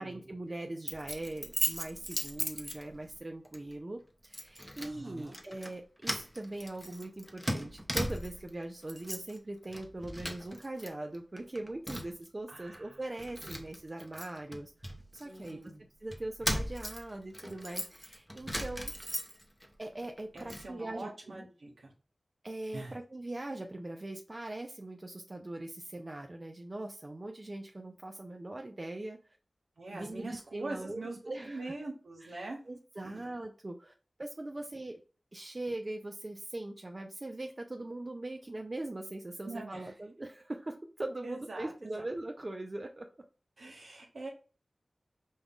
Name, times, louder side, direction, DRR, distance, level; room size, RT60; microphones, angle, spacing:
voice 1, 0.0-14.7 15.2-15.6 16.0-18.9 19.8-21.5 22.4-29.2 29.9-31.7 32.2-33.9 34.2-35.0 35.3-43.1, right 2 dB, 40° right, 3 dB, 0.5 m, -41 dB
Keys jangling, 0.9-3.2 3.5-3.7 4.3-4.9 5.3-5.7 6.0-8.5 8.8-9.4 9.7-10.9 11.1-12.3 12.7-12.8 13.2-15.5 16.1-19.7 20.0-20.7, equal, ahead, 0.8 m, -37 dB
voice 2, 4.8-5.4 12.5-13.0 15.2-15.8 20.3-21.9 22.7-23.0 29.8-32.6 33.0-33.2 39.4-39.9 41.2-42.1 43.6-44.3, right 2 dB, 90° right, -2 dB, 1.0 m, -43 dB
5.2 x 2.3 x 3.6 m, 0.37 s
wide cardioid pair, 55°, 0 cm